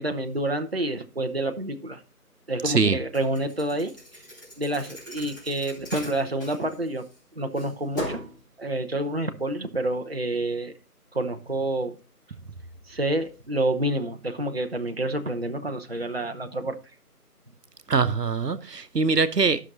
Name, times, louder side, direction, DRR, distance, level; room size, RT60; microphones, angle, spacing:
voice 1, 0.0-2.0 2.5-3.9 4.6-7.1 7.4-8.2 8.6-10.7 11.1-12.0 12.9-16.8, right 1 dB, 40° right, 0.7 m, -28 dB
voice 2, 2.6-3.0 17.9-19.6, right 4 dB, 85° right, 0.9 m, -22 dB
Thump thud, 3.1-7.2 7.6-8.4, left 1 dB, 10° left, 2.6 m, -38 dB
13.0 x 6.1 x 3.9 m
figure-of-eight pair, 165°, 47 cm